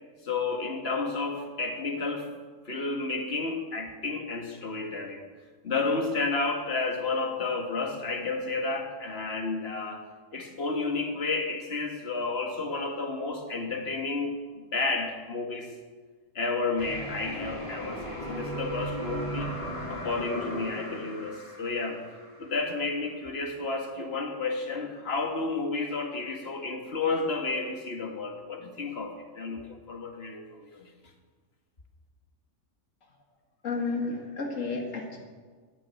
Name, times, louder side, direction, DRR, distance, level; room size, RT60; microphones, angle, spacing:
voice 1, 0.2-2.3 2.7-5.2 5.6-10.1 10.3-15.7 16.4-19.6 19.9-22.0 22.4-30.9, left 3 dB, 55° left, 3 dB, 2.0 m, -31 dB
sound 1, 16.8-22.7, right 1 dB, 25° left, 2.5 m, -37 dB
voice 2, 33.6-35.2, left 3 dB, 90° left, 2 dB, 2.2 m, -31 dB
12.5 x 10.5 x 8.4 m, 1.5 s
omnidirectional pair, 1.3 m